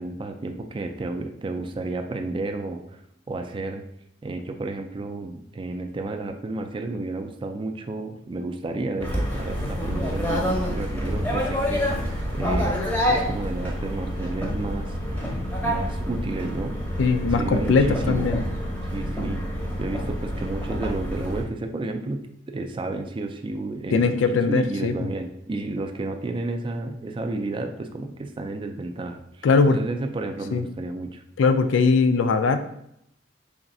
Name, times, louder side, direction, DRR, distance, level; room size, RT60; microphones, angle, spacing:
voice 1, 0.0-3.0 3.3-3.8 4.2-15.0 15.6-16.8 17.3-18.5 18.8-31.2, right 2 dB, 25° right, 6 dB, 0.3 m, -32 dB
sound 1, 9.0-21.4, equal, 10° left, 0.7 m, -27 dB
voice 2, 17.0-18.4 23.9-25.1 29.4-29.8 30.5-30.7 31.4-32.6, left 4 dB, 85° left, 9 dB, 0.4 m, -20 dB
3.5 x 2.4 x 4.1 m, 0.75 s
head